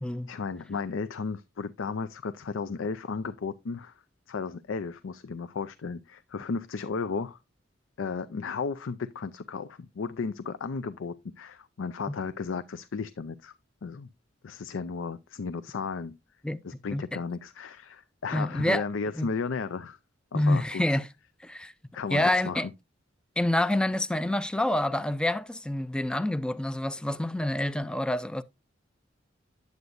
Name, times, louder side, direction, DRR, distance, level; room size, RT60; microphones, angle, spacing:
voice 1, 0.3-3.9 4.3-7.4 8.0-13.5 13.8-14.1 14.4-16.1 16.6-20.0 20.3-20.8 21.9-22.7, left 5 dB, 85° left, 0.5 m, -34 dB
voice 2, 16.4-17.2 18.3-18.8 19.1-19.3 20.3-21.1 21.4-21.7 22.1-22.7 23.4-28.4, left 1 dB, 5° left, 0.4 m, -27 dB
9.5 x 8.0 x 2.5 m
head